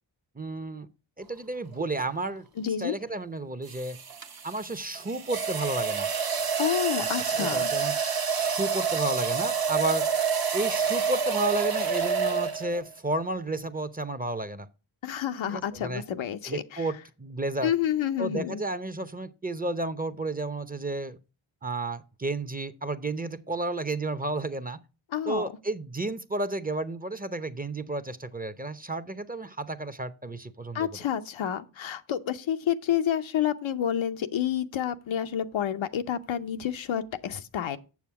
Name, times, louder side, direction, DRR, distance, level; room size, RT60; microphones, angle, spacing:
voice 1, 0.4-0.9 1.2-2.5 2.8-4.0 4.4-6.1 7.4-7.9 8.4-10.1 10.5-14.7 15.5-16.0 16.4-17.7 18.2-21.2 21.6-24.8 25.3-31.0, right 2 dB, 20° right, 0.7 m, -32 dB
sound 1, 1.7-2.0 3.7-12.9, right 6 dB, 50° right, 1.0 m, -28 dB
voice 2, 2.6-2.9 6.6-7.7 15.0-16.8 17.6-18.6 25.1-25.5 30.7-37.8, left 9 dB, 80° left, 0.7 m, -29 dB
7.3 x 6.8 x 4.7 m
cardioid pair, 50°, 46 cm